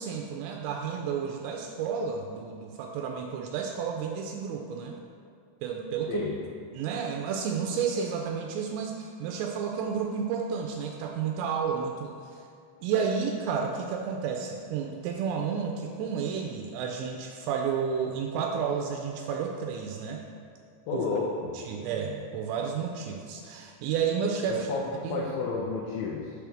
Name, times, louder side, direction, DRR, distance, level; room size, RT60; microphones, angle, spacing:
voice 1, 0.0-4.9 5.6-6.2 6.7-12.4 12.8-20.2 20.9-21.2 21.5-24.7 25.0-25.3, right 6 dB, 90° right, 1 dB, 2.8 m, -31 dB
voice 2, 6.1-6.4 20.9-21.5 24.5-26.3, left 4 dB, 90° left, -4 dB, 2.2 m, -31 dB
6.6 x 3.4 x 5.9 m, 2.3 s
omnidirectional pair, 5.0 m